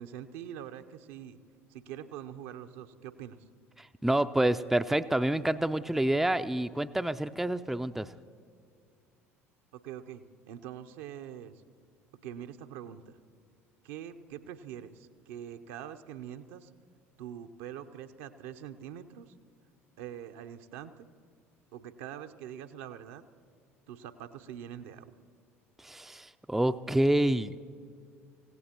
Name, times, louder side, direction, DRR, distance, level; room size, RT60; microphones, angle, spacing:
voice 1, 0.0-1.4 1.7-3.4 9.7-11.6 12.2-13.2 13.8-16.7 17.2-19.3 20.0-21.1 21.7-23.2 23.9-25.1, right 10 dB, 65° right, 9 dB, 0.7 m, -44 dB
voice 2, 3.8-8.1 25.8-27.6, right 1 dB, 5° right, 10 dB, 0.4 m, -28 dB
27.5 x 16.5 x 2.9 m, 2.2 s
figure-of-eight pair, 65°, 8 cm